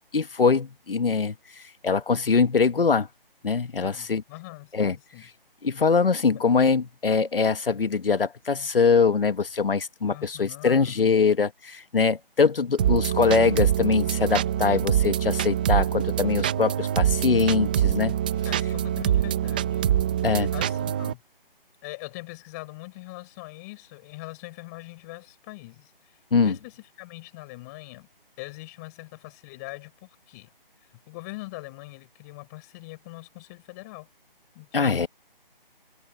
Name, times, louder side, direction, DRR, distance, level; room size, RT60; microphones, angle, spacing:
voice 1, 0.1-1.3 1.8-3.1 3.4-4.2 4.7-4.9 5.6-18.1 20.2-20.5 26.3-26.5 34.7-35.1, left 5 dB, 70° left, 1.6 m, -23 dB
voice 2, 3.8-5.3 10.0-11.1 18.4-19.8 20.5-21.2 21.8-26.1 26.4-28.1 28.4-30.5 31.1-34.1 34.5-35.1, left 23 dB, 20° left, 6.2 m, -42 dB
sound 1, 12.8-21.1, right 10 dB, 10° right, 0.7 m, -24 dB
figure-of-eight pair, 160°, 29 cm